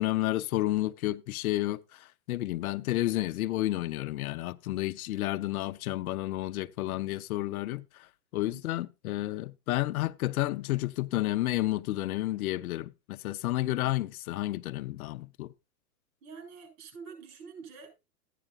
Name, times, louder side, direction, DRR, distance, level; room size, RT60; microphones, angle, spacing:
voice 1, 0.0-7.8 8.3-15.5, left 16 dB, 60° left, 0.8 m, -31 dB
voice 2, 13.6-14.1 16.2-18.1, right 5 dB, 55° right, 7.4 m, -48 dB
14.0 x 10.0 x 2.4 m
hypercardioid pair, 125°, 49 cm